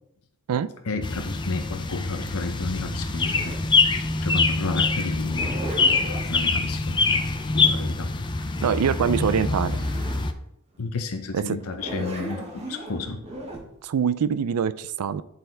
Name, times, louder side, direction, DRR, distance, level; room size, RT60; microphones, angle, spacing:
voice 1, 0.8-3.5 3.9-5.5 6.3-7.2 7.5-8.1 10.8-13.2, left 3 dB, 70° left, 5 dB, 0.7 m, -31 dB
sound 1, 1.0-10.3, left 3 dB, 20° left, 0.5 m, -24 dB
Zipper (clothing), 1.0-3.7 5.1-6.3 8.9-9.0 9.3-10.3 10.7-10.8 11.6-13.6, equal, 30° right, 1.5 m, -37 dB
voice 2, 8.6-9.8 11.3-11.6 13.8-15.2, right 7 dB, 90° right, 15 dB, 0.4 m, -24 dB
10.5 x 4.1 x 3.9 m, 0.79 s
head